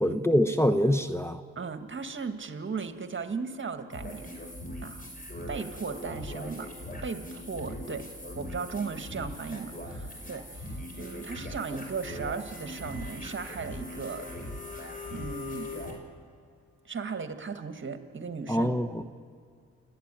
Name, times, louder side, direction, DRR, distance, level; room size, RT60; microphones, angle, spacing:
voice 1, 0.0-1.4 18.5-18.9, equal, 10° left, 9 dB, 1.1 m, -24 dB
voice 2, 1.6-4.3 4.8-5.1 5.5-6.7 7.0-8.1 8.4-14.3 15.1-15.7 16.9-18.7, right 5 dB, 40° right, 7 dB, 1.9 m, -36 dB
sound 1, 3.9-15.9, left 1 dB, 30° left, 5.4 m, -40 dB
29.0 x 10.0 x 9.2 m, 2.3 s
supercardioid pair, 55°, 29 cm